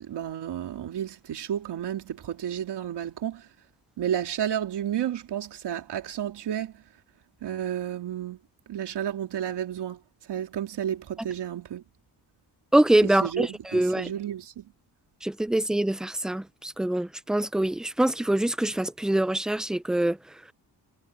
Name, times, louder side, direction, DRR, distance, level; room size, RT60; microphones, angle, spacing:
voice 1, 0.0-3.5 4.0-6.8 7.4-8.4 8.7-10.0 10.3-11.8 13.0-14.7, right 10 dB, 85° right, 3.0 m, -32 dB
voice 2, 12.7-14.1 15.2-20.2, right 1 dB, ahead, 0.4 m, -24 dB
cardioid pair, 120°, 40 cm